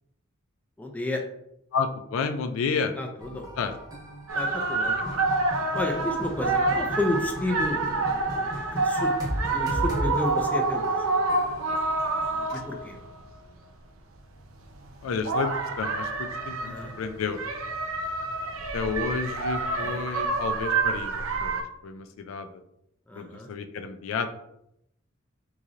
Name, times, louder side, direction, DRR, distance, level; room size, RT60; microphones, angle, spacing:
voice 1, 0.8-1.2 3.0-3.5 4.3-5.1 5.7-9.1 9.5-11.1 12.5-13.0 16.6-16.9 19.8-20.1 23.1-23.5, left 1 dB, 10° left, 2 dB, 0.4 m, -32 dB
voice 2, 1.7-2.9 3.6-3.7 12.5-12.6 15.0-17.4 18.7-22.6 23.1-24.3, left 5 dB, 80° left, 9 dB, 0.4 m, -31 dB
sound 1, 3.2-12.4, equal, 20° right, 1.0 m, -37 dB
sound 2, 4.3-13.1 14.8-21.6, right 3 dB, 90° right, 0.5 m, -28 dB
3.8 x 3.0 x 2.5 m, 0.79 s
head